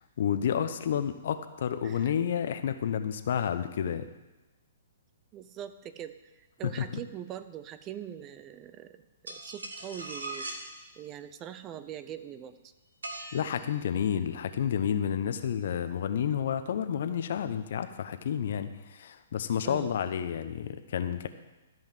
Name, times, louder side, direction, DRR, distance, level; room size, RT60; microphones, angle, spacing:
voice 1, 0.2-4.1 13.3-21.3, left 8 dB, 60° left, 10 dB, 0.9 m, -30 dB
voice 2, 5.3-10.5 11.0-12.7 19.6-19.9, right 10 dB, 25° right, 12 dB, 0.7 m, -42 dB
sound 1, 9.3-10.7 13.0-13.8, right 2 dB, 85° right, 1.7 m, -40 dB
14.0 x 5.5 x 7.6 m, 1.1 s
hypercardioid pair, 125°, 0 cm